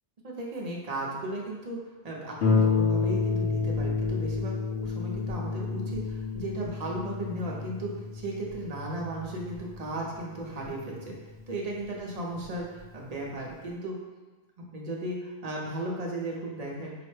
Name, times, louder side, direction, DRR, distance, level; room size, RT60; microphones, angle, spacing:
voice 1, 0.2-1.8 2.0-11.1 11.5-13.9 14.7-16.9, right 1 dB, 40° right, -2 dB, 0.7 m, -35 dB
Harp, 2.4-11.6 12.4-12.5 13.0-13.1, left 4 dB, 70° left, 0.9 m, -30 dB
4.8 x 2.1 x 3.2 m, 1.3 s
omnidirectional pair, 1.1 m